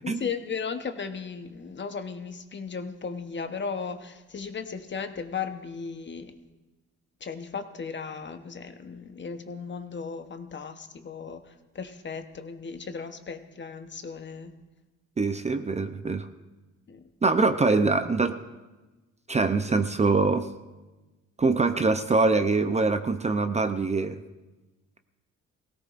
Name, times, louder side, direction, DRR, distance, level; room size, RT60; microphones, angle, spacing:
voice 1, 0.0-6.4 7.2-14.6 16.9-17.0, left 5 dB, 40° left, 8 dB, 1.0 m, -36 dB
voice 2, 15.2-16.3 17.2-18.4 19.3-20.5 21.4-24.2, right 3 dB, 20° right, 8 dB, 0.6 m, -24 dB
18.5 x 17.0 x 2.5 m, 1.1 s
cardioid pair, 90°, 30 cm